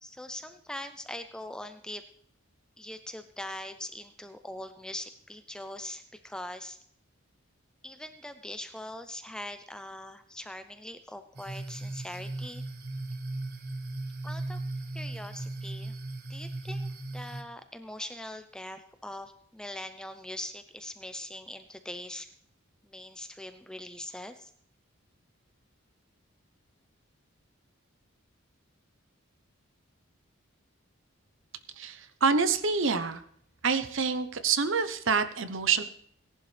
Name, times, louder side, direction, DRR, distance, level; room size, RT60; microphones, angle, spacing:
voice 1, 0.0-2.0 2.8-6.8 7.8-12.6 14.2-14.6 14.9-15.9 16.3-22.3 22.8-24.5, left 1 dB, 5° left, 8 dB, 0.5 m, -42 dB
sound 1, 11.3-17.4, right 2 dB, 45° right, 1.4 m, -37 dB
voice 2, 31.8-33.2 33.6-35.8, right 5 dB, 65° right, 11 dB, 0.8 m, -27 dB
17.5 x 11.0 x 3.3 m, 0.63 s
head